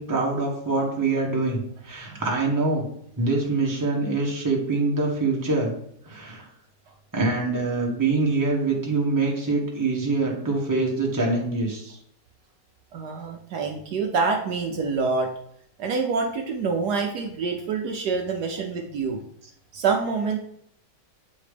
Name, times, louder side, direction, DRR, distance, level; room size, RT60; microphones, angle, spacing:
voice 1, 0.0-2.8 3.2-5.7 6.0-6.4 7.1-12.0, right 3 dB, 10° right, -2 dB, 1.1 m, -24 dB
voice 2, 12.9-15.3 15.8-19.2 19.7-20.4, right 4 dB, 70° right, 3 dB, 1.2 m, -26 dB
8.3 x 3.1 x 5.0 m, 0.70 s
omnidirectional pair, 2.0 m